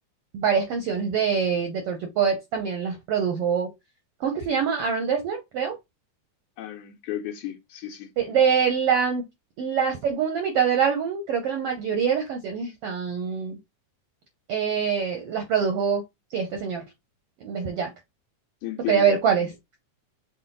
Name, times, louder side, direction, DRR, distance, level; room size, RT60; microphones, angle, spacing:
voice 1, 0.3-3.7 4.2-5.8 8.2-9.2 9.6-13.6 14.5-16.0 16.3-16.8 17.4-17.9 18.9-19.5, right 7 dB, 75° right, 1.4 m, -24 dB
voice 2, 6.6-8.1 18.6-19.2, left 12 dB, 80° left, 2.1 m, -33 dB
5.6 x 2.3 x 3.8 m
omnidirectional pair, 3.6 m